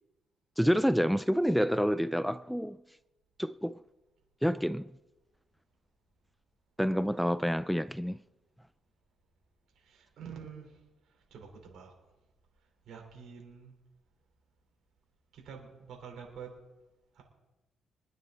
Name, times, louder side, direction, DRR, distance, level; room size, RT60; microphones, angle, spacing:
voice 1, 0.6-2.8 3.4-3.8 4.4-4.9 6.8-8.2, equal, ahead, 0.4 m, -28 dB
voice 2, 9.8-11.9 12.6-13.8 15.3-16.5 17.1-17.2, right 6 dB, 70° right, 5.2 m, -48 dB
25.0 x 9.3 x 4.5 m
cardioid pair, 90°, 0 cm